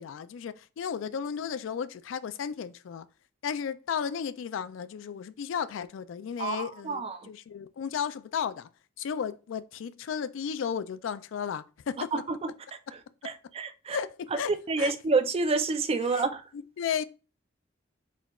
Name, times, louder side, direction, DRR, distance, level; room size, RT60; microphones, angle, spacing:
voice 1, 0.0-3.1 3.4-8.7 9.0-12.1 13.9-14.5 14.8-14.9 16.1-16.2 16.8-17.0, left 7 dB, 70° left, 0.3 m, -34 dB
voice 2, 6.4-7.3 12.1-12.5 13.2-14.0 14.5-16.4, right 3 dB, 30° right, 0.4 m, -28 dB
4.2 x 4.1 x 2.3 m
head